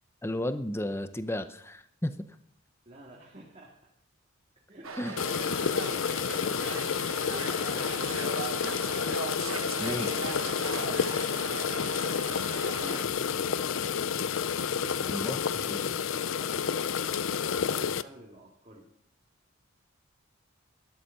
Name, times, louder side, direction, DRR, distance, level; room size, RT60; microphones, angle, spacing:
voice 1, 0.2-2.4 4.9-5.2 9.8-10.1 15.0-16.0, left 1 dB, 10° left, 11 dB, 0.7 m, -34 dB
voice 2, 2.9-3.9 4.7-5.1 5.5-8.1 10.8-11.3 11.7-12.2 12.7-13.9 14.6-16.8 17.4-18.9, right 1 dB, 35° right, -4 dB, 2.1 m, -51 dB
sound 1, 4.8-13.1, right 4 dB, 75° right, 1.1 m, -38 dB
sound 2, 5.2-18.0, left 7 dB, 65° left, 0.5 m, -30 dB
13.0 x 10.5 x 5.6 m, 0.72 s
head